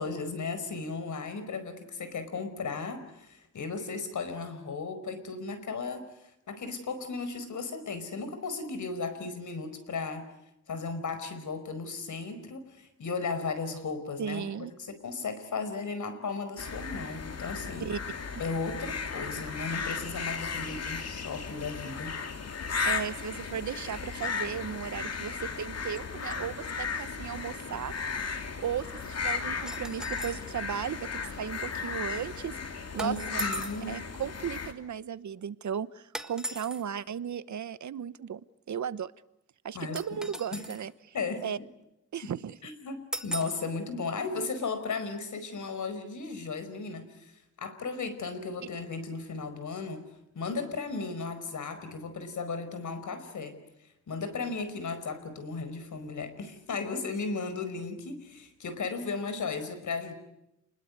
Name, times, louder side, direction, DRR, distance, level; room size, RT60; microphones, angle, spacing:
voice 1, 0.0-6.1 6.5-10.3 10.7-17.9 18.4-22.2 33.0-34.0 39.7-40.2 40.5-40.6 41.1-41.7 42.2-42.3 42.6-50.0 50.3-53.6 54.1-60.1, left 4 dB, 75° left, 10 dB, 5.0 m, -35 dB
voice 2, 14.2-14.7 17.8-18.0 22.8-27.9 28.6-32.5 32.9-33.4 33.9-38.4 38.7-39.1 39.6-40.9 41.4-41.6 42.1-42.6, right 8 dB, 70° right, 16 dB, 1.0 m, -35 dB
sound 1, 16.6-34.7, left 5 dB, 55° left, 3.1 m, -35 dB
sound 2, 29.7-30.5 33.0-33.9 36.1-36.8 40.0-40.9 43.1-43.7, right 1 dB, ahead, 1.6 m, -38 dB
29.5 x 21.0 x 9.5 m, 0.86 s
wide cardioid pair, 110°, 30 cm